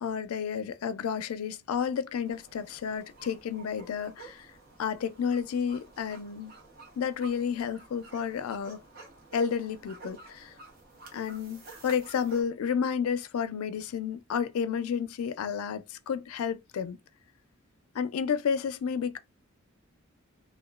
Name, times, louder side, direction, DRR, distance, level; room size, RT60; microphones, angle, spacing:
voice 1, 0.0-4.5 4.8-6.5 7.0-8.8 9.3-10.5 11.1-17.0 17.9-19.2, left 7 dB, 85° left, 0.4 m, -31 dB
sound 1, 2.2-12.4, right 3 dB, 45° right, 0.9 m, -51 dB
2.9 x 2.2 x 2.3 m
head